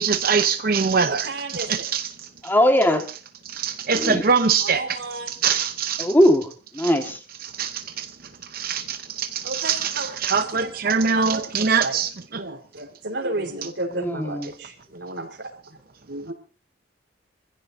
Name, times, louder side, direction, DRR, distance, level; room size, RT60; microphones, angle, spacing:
voice 1, 0.0-2.1 3.4-5.0 5.3-6.1 6.8-7.1 7.4-8.1 8.5-12.4, right 5 dB, 55° right, 0.8 m, -23 dB
voice 2, 1.1-1.8 4.6-5.4 9.4-10.1 10.5-12.0 12.3-15.5 16.1-16.3, right 2 dB, 70° right, 4.3 m, -33 dB
voice 3, 2.4-3.1 4.0-4.2 6.0-6.5 6.7-7.2 14.0-14.5, equal, 10° left, 1.8 m, -19 dB
25.5 x 15.5 x 2.7 m
head